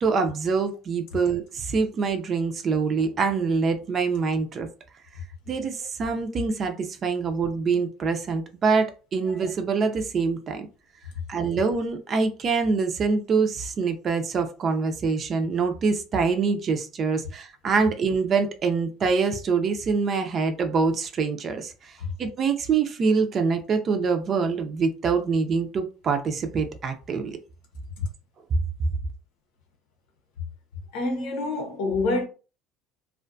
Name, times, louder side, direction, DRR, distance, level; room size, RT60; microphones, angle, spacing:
voice 1, 0.0-4.7 5.5-10.7 11.3-21.9 22.2-27.4, right 5 dB, 40° right, 0.4 m, -25 dB
voice 2, 30.9-32.2, left 2 dB, 85° left, 0.8 m, -26 dB
2.4 x 2.2 x 2.5 m
cardioid pair, 120°, 0 cm